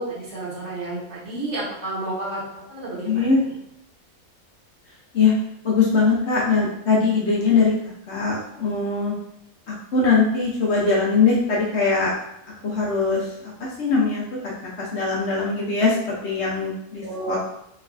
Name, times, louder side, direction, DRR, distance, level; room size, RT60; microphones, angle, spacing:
voice 1, 0.0-2.4 2.7-3.3 17.0-17.4, right 2 dB, 55° right, -6 dB, 1.2 m, -31 dB
voice 2, 3.1-3.4 5.1-5.3 5.6-9.1 9.7-12.1 12.6-13.5 13.8-16.0 16.2-17.4, left 4 dB, 60° left, -4 dB, 0.8 m, -21 dB
3.2 x 3.1 x 2.4 m, 0.79 s
omnidirectional pair, 1.5 m